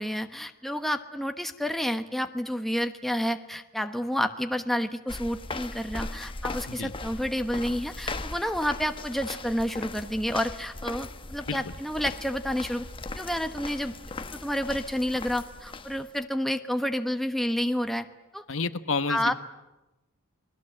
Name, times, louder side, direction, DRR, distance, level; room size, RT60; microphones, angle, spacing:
voice 1, 0.0-12.9 13.2-13.9 14.3-18.1 18.3-18.4 19.1-19.3, equal, ahead, 6 dB, 1.1 m, -29 dB
sound 1, 5.1-16.2, left 3 dB, 25° left, 1.0 m, -39 dB
voice 2, 18.5-19.3, left 4 dB, 65° left, 10 dB, 1.2 m, -29 dB
29.5 x 21.5 x 7.7 m, 1.0 s
head